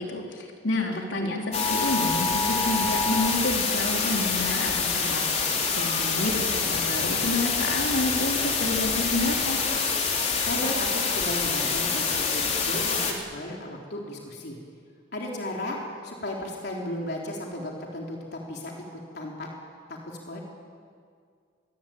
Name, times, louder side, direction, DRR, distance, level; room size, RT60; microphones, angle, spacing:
voice 1, 0.0-9.6, left 2 dB, 75° left, 1 dB, 4.0 m, -29 dB
voice 2, 0.9-1.3 10.4-14.6 15.1-15.8 16.0-19.5 19.9-20.4, left 1 dB, 60° left, -1 dB, 3.6 m, -35 dB
sound 1, 1.5-13.1, left 5 dB, 35° left, 3.8 m, -26 dB
28.0 x 22.0 x 8.9 m, 2.2 s
head